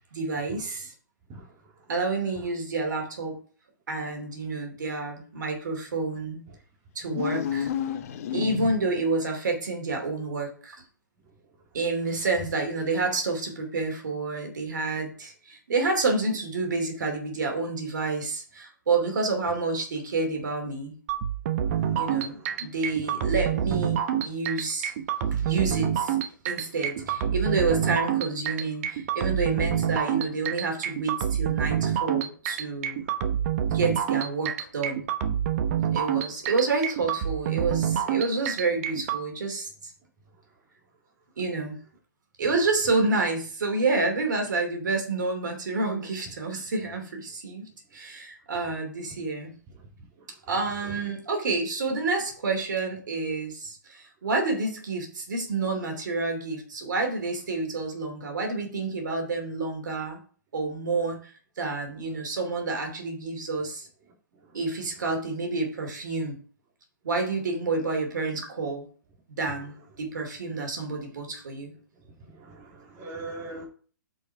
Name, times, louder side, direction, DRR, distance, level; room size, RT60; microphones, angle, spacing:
voice 1, 0.1-0.9 1.9-3.4 3.9-6.4 6.9-7.7 8.3-10.8 11.7-20.9 22.0-24.9 25.3-33.0 33.7-35.0 35.9-39.9 41.4-41.8 42.4-49.5 50.5-60.2 60.5-63.9 64.5-66.4 67.0-68.8 69.4-71.7, right 3 dB, 65° right, 2.8 m, -29 dB
sound 1, 7.0-9.1, left 8 dB, 45° left, 0.8 m, -30 dB
sound 2, 21.1-39.2, right 9 dB, 45° right, 1.0 m, -27 dB
voice 2, 21.6-22.3 50.8-50.9 72.2-73.7, right 2 dB, 25° right, 2.6 m, -41 dB
8.3 x 5.3 x 4.6 m
hypercardioid pair, 130°, 11 cm